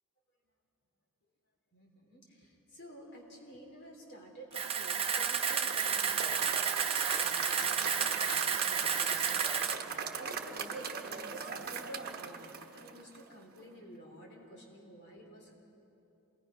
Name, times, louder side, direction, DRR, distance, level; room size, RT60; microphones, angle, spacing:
voice 1, 1.7-6.5 6.9-9.4 10.2-15.5, right 1 dB, 50° left, 0 dB, 3.7 m, -50 dB
Camera, 4.5-9.7, right 7 dB, 25° right, 0.8 m, -31 dB
Applause / Crowd, 5.2-13.3, right 6 dB, 45° right, 1.1 m, -39 dB
28.0 x 20.5 x 5.6 m, 2.9 s
head